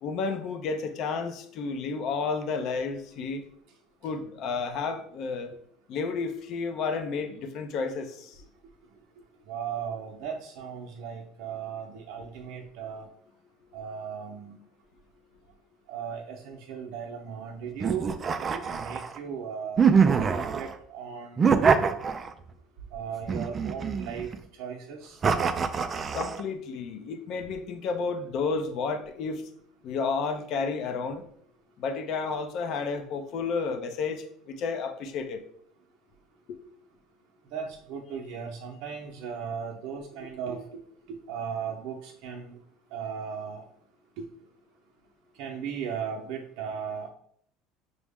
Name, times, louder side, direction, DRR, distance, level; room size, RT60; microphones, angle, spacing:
voice 1, 0.0-3.4 4.0-5.6 5.9-8.4 26.1-29.4 29.8-31.2 31.8-35.4, left 4 dB, 55° left, 8 dB, 0.6 m, -31 dB
voice 2, 9.5-13.1 13.7-14.6 15.9-19.8 20.3-21.9 22.9-24.3 24.6-25.2 37.5-40.8 41.1-42.6 42.9-43.6 44.2-44.3 45.4-47.1, right 7 dB, 65° right, -1 dB, 0.6 m, -37 dB
sound 1, 17.8-19.2 19.8-20.7 21.4-22.5 23.3-24.4 25.2-26.4, right 6 dB, 30° right, 0.3 m, -24 dB
6.0 x 2.1 x 3.5 m, 0.65 s
supercardioid pair, 115°, 0 cm